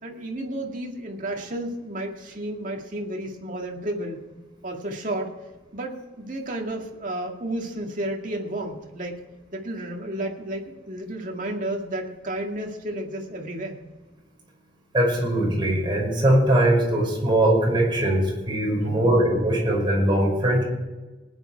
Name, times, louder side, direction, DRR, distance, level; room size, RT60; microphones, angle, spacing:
voice 1, 0.0-4.2 4.6-5.3 5.7-9.3 9.5-13.8 18.8-19.1, right 1 dB, 50° right, 1 dB, 2.1 m, -32 dB
voice 2, 14.9-20.6, right 1 dB, 30° right, -3 dB, 5.5 m, -21 dB
19.5 x 10.0 x 4.7 m, 1.2 s
head